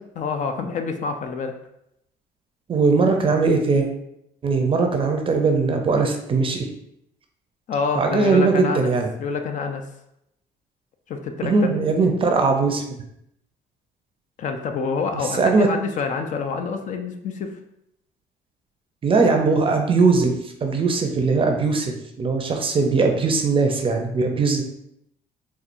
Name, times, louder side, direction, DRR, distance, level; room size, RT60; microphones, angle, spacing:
voice 1, 0.2-1.5 7.7-8.9 9.2-9.8 11.1-11.7 14.4-17.5, left 5 dB, 50° left, 5 dB, 0.5 m, -27 dB
voice 2, 2.7-3.9 4.4-6.7 8.0-9.1 11.4-13.0 15.4-15.7 19.0-20.3 20.6-24.6, right 4 dB, 30° right, 3 dB, 0.5 m, -20 dB
4.2 x 2.4 x 2.6 m, 0.79 s
cardioid pair, 110°, 17 cm